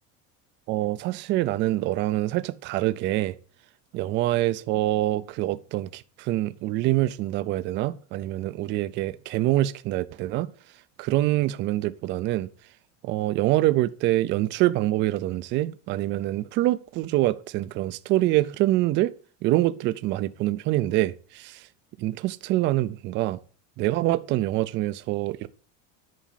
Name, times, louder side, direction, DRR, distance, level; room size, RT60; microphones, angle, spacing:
voice 1, 0.7-3.4 3.9-10.5 11.0-12.5 13.0-19.1 19.4-21.6 22.0-23.4 23.8-25.5, right 16 dB, 30° right, 0.4 m, -25 dB
10.0 x 5.0 x 7.4 m
cardioid pair, 175°, 36 cm